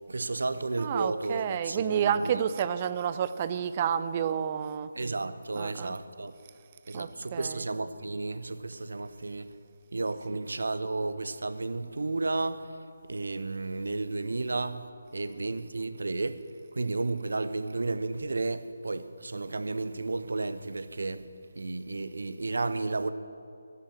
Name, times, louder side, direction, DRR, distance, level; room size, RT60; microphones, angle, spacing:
voice 1, 0.1-2.3 5.0-6.3 6.9-9.5 9.9-12.6 13.1-14.8 15.1-16.4 16.8-21.2 21.6-23.1, right 3 dB, 55° right, 0.8 m, -32 dB
voice 2, 0.8-4.9 5.5-5.9 6.9-7.7 10.3-10.4, right 8 dB, 25° right, 0.5 m, -30 dB
13.0 x 11.0 x 7.7 m
figure-of-eight pair, 150°, 0 cm